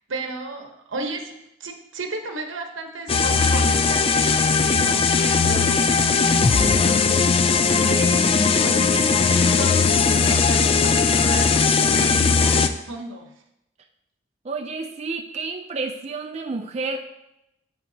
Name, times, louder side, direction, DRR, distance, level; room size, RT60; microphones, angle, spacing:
voice 1, 0.1-13.3, right 2 dB, 85° right, 4 dB, 1.0 m, -34 dB
sound 1, 3.1-12.7, left 5 dB, 30° left, 0.3 m, -19 dB
voice 2, 14.4-17.0, right 3 dB, 35° right, 3 dB, 0.4 m, -30 dB
7.9 x 7.7 x 2.8 m, 0.86 s
head